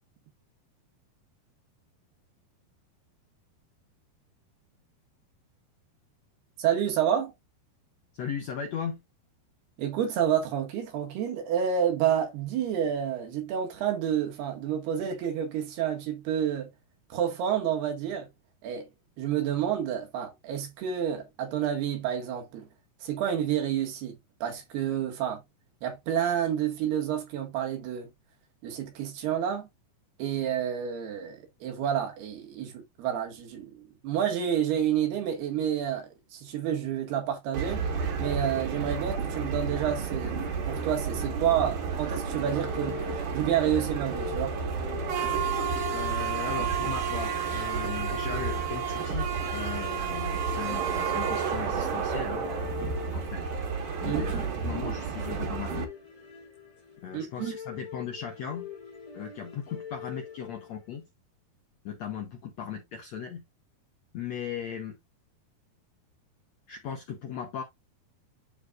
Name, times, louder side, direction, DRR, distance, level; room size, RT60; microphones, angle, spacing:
voice 1, 6.6-7.3 9.8-16.7 17.1-18.3 18.6-18.9 19.2-22.7 23.0-25.4 25.8-28.1 28.6-29.7 30.2-37.8 38.2-40.4 40.7-44.6 54.0-54.4 57.1-57.6, right 9 dB, 80° right, 4.0 m, -29 dB
voice 2, 8.1-9.0 45.9-52.5 53.1-53.5 54.0-55.9 57.0-58.7 59.1-61.1 61.8-63.4 64.1-65.0 66.7-67.6, left 7 dB, 70° left, 1.6 m, -37 dB
sound 1, 37.5-55.8, right 6 dB, 55° right, 2.9 m, -31 dB
sound 2, 42.4-60.9, left 7 dB, 15° left, 1.2 m, -43 dB
11.5 x 4.4 x 2.5 m
omnidirectional pair, 4.6 m